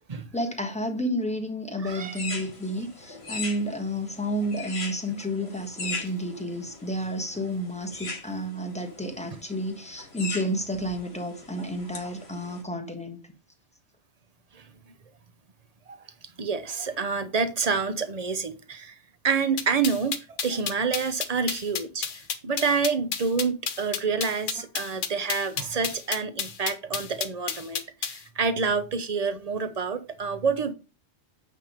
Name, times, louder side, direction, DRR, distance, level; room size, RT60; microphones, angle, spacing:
voice 1, 0.3-13.2, equal, 5° left, 1.3 m, -31 dB
voice 2, 1.8-2.2 14.5-14.6 15.9-16.0 16.4-18.9 19.2-22.1 22.4-30.7, right 5 dB, 35° right, 0.8 m, -28 dB
sound 1, 1.9-12.6, left 4 dB, 60° left, 2.0 m, -40 dB
sound 2, 19.6-28.2, left 7 dB, 80° left, 1.2 m, -31 dB
8.8 x 3.6 x 5.1 m
omnidirectional pair, 1.2 m